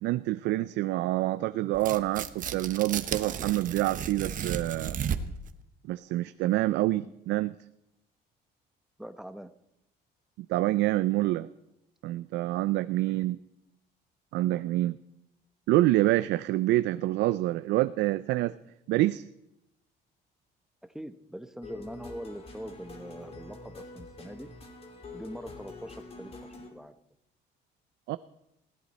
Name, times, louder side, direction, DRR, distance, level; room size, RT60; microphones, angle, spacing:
voice 1, 0.0-5.0 5.9-7.5 10.5-11.5 12.0-13.4 14.3-15.0 15.7-18.5 18.9-19.2 28.1-28.2, right 16 dB, 85° right, 13 dB, 0.5 m, -27 dB
Tearing, 1.7-5.5, right 8 dB, 50° right, 1.0 m, -34 dB
voice 2, 9.0-9.6 20.8-24.5 25.1-27.0, right 1 dB, 5° right, 10 dB, 0.9 m, -43 dB
sound 1, 21.6-26.7, left 3 dB, 35° left, 3.0 m, -46 dB
20.0 x 16.5 x 4.2 m, 0.86 s
cardioid pair, 115°, 18 cm